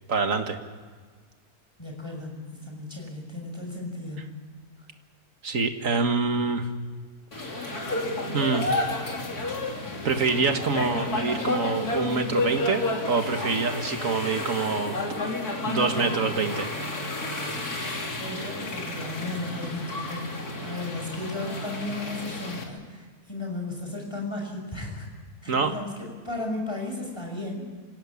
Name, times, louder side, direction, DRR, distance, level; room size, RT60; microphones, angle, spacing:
voice 1, 0.1-0.6 5.4-6.7 7.4-7.8 8.3-8.7 10.0-15.0 15.6-16.7 25.5-25.7, right 4 dB, 60° right, 6 dB, 2.1 m, -26 dB
voice 2, 1.8-4.4 18.2-25.1 25.4-27.7, left 2 dB, 15° left, 1 dB, 6.3 m, -35 dB
sound 1, 7.3-22.6, left 2 dB, 80° left, 3.5 m, -31 dB
25.5 x 17.5 x 8.6 m, 1.5 s
omnidirectional pair, 1.6 m